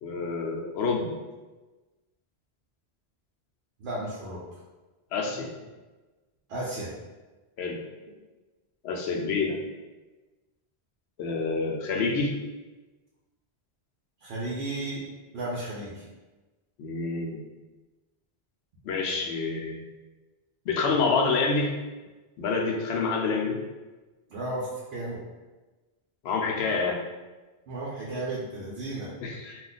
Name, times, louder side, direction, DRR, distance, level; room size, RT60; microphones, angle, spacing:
voice 1, 0.0-1.2 5.1-5.5 7.6-7.8 8.8-9.6 11.2-12.3 16.8-17.4 18.8-19.8 20.7-21.7 22.4-23.6 26.2-27.0 29.2-29.6, left 4 dB, 80° left, 0 dB, 0.8 m, -27 dB
voice 2, 3.8-4.4 5.3-5.5 6.5-6.9 14.2-15.0 15.3-16.0 21.1-21.2 24.3-25.2 27.7-29.1, right 2 dB, 75° right, -6 dB, 0.9 m, -34 dB
2.4 x 2.2 x 3.9 m, 1.2 s
omnidirectional pair, 1.1 m